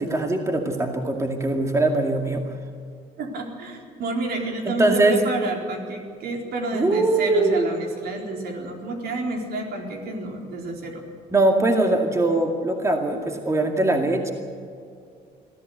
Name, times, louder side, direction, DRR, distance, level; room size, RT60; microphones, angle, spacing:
voice 1, 0.0-2.4 4.6-5.2 6.7-7.7 11.3-14.3, right 2 dB, 15° right, 3 dB, 2.2 m, -21 dB
voice 2, 3.2-11.1, right 2 dB, 70° right, 1 dB, 4.2 m, -30 dB
22.0 x 14.5 x 8.2 m, 2.3 s
cardioid pair, 110°, 17 cm